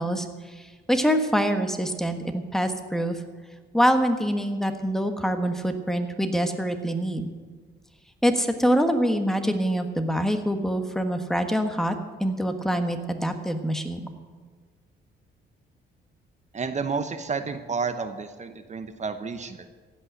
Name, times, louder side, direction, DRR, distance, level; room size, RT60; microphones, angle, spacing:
voice 1, 0.0-3.2 3.7-7.3 8.2-11.9 12.2-14.1, equal, ahead, 6 dB, 1.4 m, -25 dB
voice 2, 16.5-19.7, right 5 dB, 35° right, 9 dB, 0.9 m, -31 dB
15.5 x 5.6 x 9.9 m, 1.5 s
cardioid pair, 90°, 20 cm